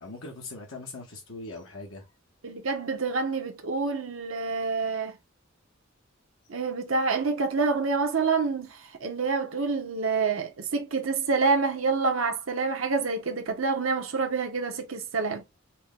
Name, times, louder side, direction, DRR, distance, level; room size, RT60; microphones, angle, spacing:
voice 1, 0.0-2.1, left 3 dB, 70° left, 1.1 m, -41 dB
voice 2, 2.4-5.1 6.5-8.7 9.0-15.4, right 4 dB, 70° right, 0.8 m, -27 dB
4.4 x 2.2 x 3.6 m
head